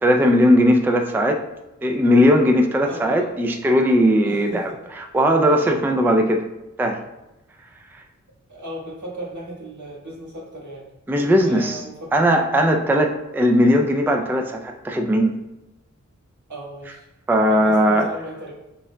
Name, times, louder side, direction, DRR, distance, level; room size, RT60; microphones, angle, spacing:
voice 1, 0.0-1.4 1.8-6.4 6.8-7.0 11.1-11.8 12.1-15.3 17.3-18.1, equal, 5° right, 3 dB, 0.4 m, -18 dB
voice 2, 2.9-3.3 3.7-4.8 8.5-10.9 11.3-12.1 16.5-17.1 17.5-18.5, right 1 dB, 75° right, -5 dB, 1.5 m, -36 dB
6.1 x 3.7 x 2.2 m, 0.96 s
wide cardioid pair, 70°, 30 cm